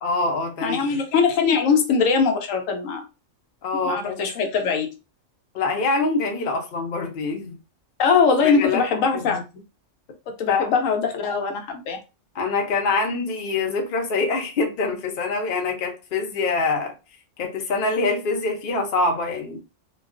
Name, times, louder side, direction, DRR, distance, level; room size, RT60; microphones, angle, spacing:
voice 1, 0.0-0.9 3.6-4.2 5.5-7.6 8.4-9.4 10.5-10.7 12.3-16.9 17.4-19.6, left 3 dB, 55° left, 0.6 m, -25 dB
voice 2, 0.6-3.1 3.7-4.9 8.0-9.4 10.4-12.0, left 5 dB, 80° left, 1.0 m, -21 dB
2.3 x 2.2 x 2.4 m
omnidirectional pair, 1.4 m